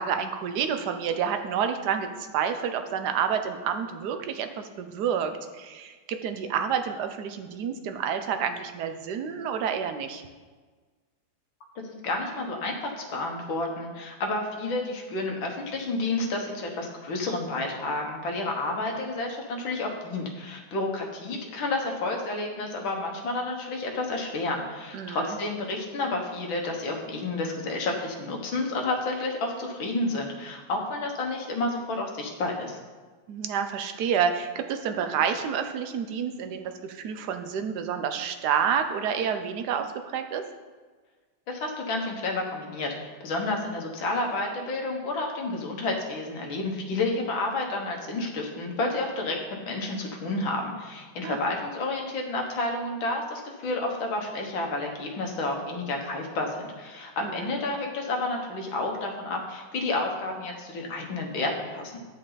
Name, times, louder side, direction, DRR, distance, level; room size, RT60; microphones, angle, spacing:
voice 1, 0.0-10.2 24.9-25.4 33.3-40.4 51.2-51.4 57.2-57.5, right 7 dB, 65° right, 7 dB, 1.1 m, -29 dB
voice 2, 11.8-32.8 41.5-49.4 49.6-62.0, left 2 dB, 75° left, 1 dB, 2.0 m, -30 dB
10.0 x 7.4 x 4.0 m, 1.4 s
omnidirectional pair, 2.2 m